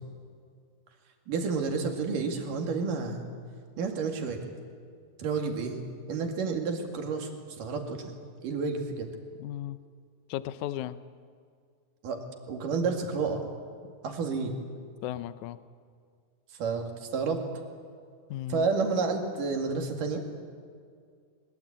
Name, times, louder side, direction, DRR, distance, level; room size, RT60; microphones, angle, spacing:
voice 1, 1.3-3.3 3.8-4.4 5.2-5.8 6.1-7.3 7.6-8.1 8.4-9.1 12.0-12.2 12.5-13.5 14.0-14.5 16.6-17.4 18.5-20.2, right 4 dB, 75° right, 3 dB, 3.9 m, -30 dB
voice 2, 9.4-9.8 10.3-11.0 13.8-13.9 15.0-15.6 18.3-18.7, left 13 dB, 75° left, 13 dB, 1.9 m, -35 dB
22.5 x 22.0 x 8.7 m, 2.1 s
omnidirectional pair, 3.9 m